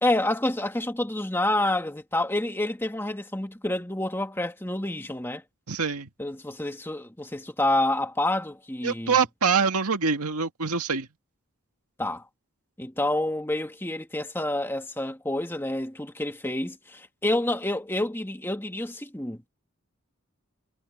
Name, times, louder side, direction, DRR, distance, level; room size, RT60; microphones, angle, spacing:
voice 1, 0.0-5.4 6.2-9.2 12.0-12.2 12.8-19.5, left 1 dB, 10° left, 1.8 m, -28 dB
voice 2, 5.7-6.1 8.8-11.1, right 5 dB, 85° right, 2.0 m, -25 dB
head